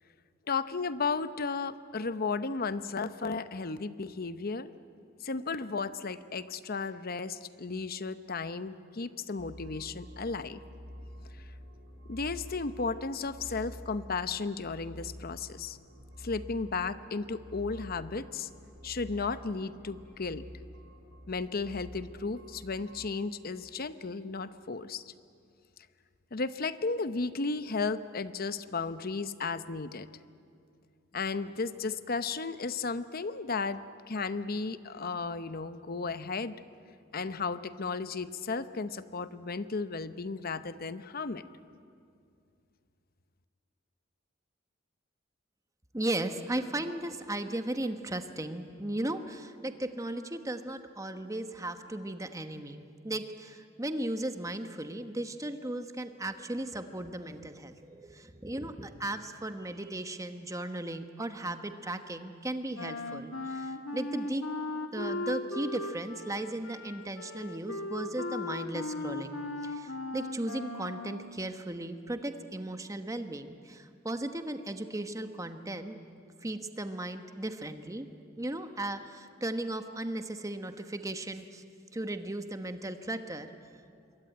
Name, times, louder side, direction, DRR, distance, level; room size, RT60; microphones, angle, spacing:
voice 1, 0.5-4.7 5.2-10.6 12.1-15.8 16.2-18.5 18.8-20.4 21.3-25.1 26.3-30.1 31.1-33.8 34.1-36.6 37.1-41.4, left 4 dB, 50° left, 12 dB, 0.8 m, -34 dB
sound 1, 9.4-23.1, equal, 70° right, 4.7 m, -48 dB
voice 2, 45.9-64.4 64.9-76.0 76.4-78.1 78.4-81.6 81.9-83.5, right 1 dB, 15° right, 8 dB, 1.2 m, -36 dB
Wind instrument woodwind instrument, 62.7-71.3, left 2 dB, 85° left, 1.8 m, -37 dB
26.0 x 22.5 x 9.2 m, 2.4 s
head